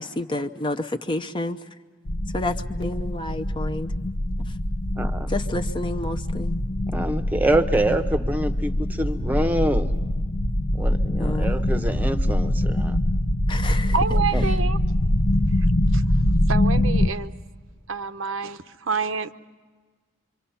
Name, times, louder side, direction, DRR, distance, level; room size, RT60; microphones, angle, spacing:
voice 1, 0.0-1.6 2.3-3.9 5.3-6.6 11.2-11.5 13.5-13.9, left 2 dB, 25° left, 7 dB, 0.7 m, -29 dB
sound 1, 2.1-17.1, left 1 dB, 55° left, 0.9 m, -23 dB
voice 2, 5.0-5.3 6.9-9.9 10.7-13.0 14.3-14.4, right 1 dB, 10° right, 9 dB, 0.9 m, -25 dB
voice 3, 13.9-14.8 15.9-16.0 16.5-17.3 17.9-19.3, right 5 dB, 80° right, 9 dB, 0.8 m, -27 dB
25.5 x 25.5 x 5.7 m, 1.4 s
head